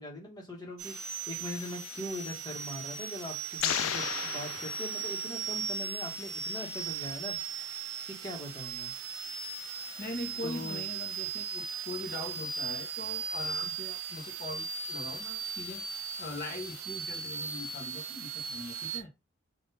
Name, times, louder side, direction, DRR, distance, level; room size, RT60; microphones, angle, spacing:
voice 1, 0.0-7.4 8.1-8.9 9.7-10.0 10.4-10.9, left 1 dB, 20° left, 1.6 m, -41 dB
sound 1, 0.8-19.0, right 6 dB, 85° right, 1.0 m, -38 dB
sound 2, 3.6-5.5, left 12 dB, 65° left, 0.3 m, -34 dB
voice 2, 10.0-15.8 16.2-19.1, left 1 dB, 45° left, 1.2 m, -41 dB
3.9 x 2.9 x 4.2 m
head